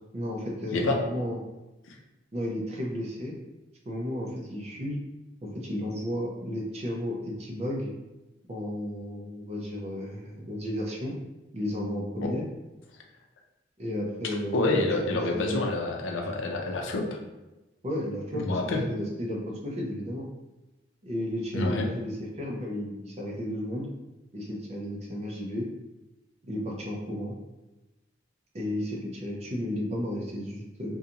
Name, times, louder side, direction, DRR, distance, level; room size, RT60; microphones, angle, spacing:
voice 1, 0.1-1.4 2.3-3.4 3.9-5.0 5.4-7.9 8.5-11.1 11.5-12.4 13.8-15.7 17.8-20.3 21.0-23.9 24.3-25.7 26.5-27.3 28.5-31.0, equal, 35° right, -2 dB, 0.5 m, -33 dB
voice 2, 14.5-17.1 18.3-18.8 21.5-21.9, left 2 dB, 85° left, 1 dB, 0.5 m, -27 dB
2.5 x 2.3 x 2.8 m, 1.1 s
head